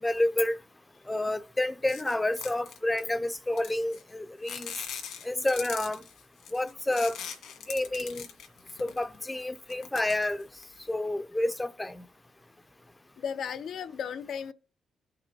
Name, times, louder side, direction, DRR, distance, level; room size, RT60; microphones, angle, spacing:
voice 1, 0.0-0.6 1.1-4.7 5.2-6.0 6.5-7.2 7.7-8.3 8.8-10.5 10.9-12.0, left 1 dB, 15° left, 0.5 m, -29 dB
Handling Polystyrene, 1.9-3.1 3.6-4.1 4.4-9.2 9.6-10.8, left 7 dB, 85° left, 1.9 m, -41 dB
voice 2, 13.2-14.5, left 7 dB, 70° left, 0.5 m, -35 dB
17.0 x 5.9 x 2.8 m
cardioid pair, 85°, 0 cm